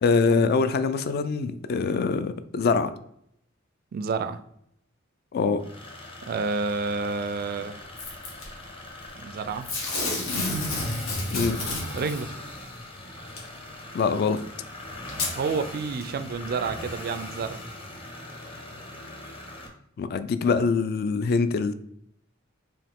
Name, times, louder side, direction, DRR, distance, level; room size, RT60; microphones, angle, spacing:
voice 1, 0.0-2.9 5.3-5.6 11.3-11.6 13.9-14.4 20.0-21.7, left 4 dB, 50° left, 12 dB, 0.3 m, -24 dB
voice 2, 3.9-4.4 6.3-7.8 9.2-9.7 11.9-12.4 15.4-17.6, right 4 dB, 50° right, 10 dB, 0.3 m, -29 dB
sound 1, 5.6-19.7, left 1 dB, 25° left, 0.8 m, -40 dB
Packing tape duct tape / Tearing, 8.0-8.4 9.6-12.2 13.4-13.5 14.4-14.5 15.1-15.3 16.0-16.1, left 2 dB, 85° left, 1.3 m, -29 dB
4.7 x 3.1 x 3.5 m, 0.73 s
head